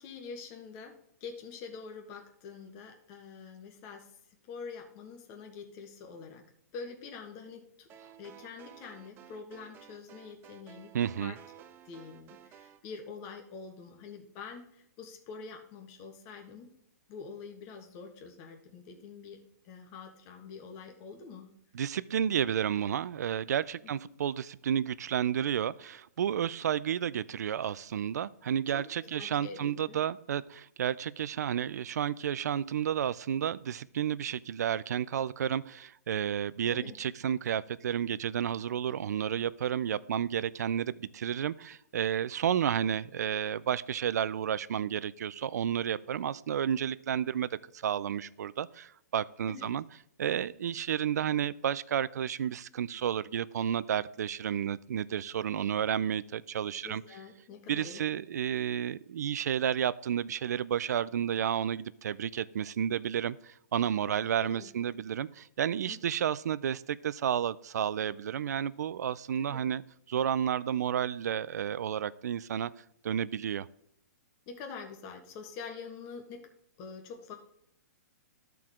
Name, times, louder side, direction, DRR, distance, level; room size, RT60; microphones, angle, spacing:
voice 1, 0.0-4.1 4.5-6.5 6.7-7.9 8.2-10.9 11.2-11.4 11.8-16.8 17.1-21.5 28.7-28.8 29.1-30.0 36.7-36.9 49.5-49.7 56.8-58.0 64.1-64.8 65.8-66.0 69.4-69.6 74.5-76.5 76.8-77.3, left 5 dB, 35° left, 4 dB, 1.3 m, -46 dB
sound 1, 7.9-12.8, right 10 dB, 25° right, 0.5 m, -54 dB
voice 2, 10.9-11.4 21.7-49.8 50.2-57.0 57.7-69.8 70.1-72.7 73.0-73.7, right 9 dB, 75° right, 18 dB, 0.4 m, -31 dB
13.0 x 4.6 x 3.6 m, 0.75 s
hypercardioid pair, 140°, 9 cm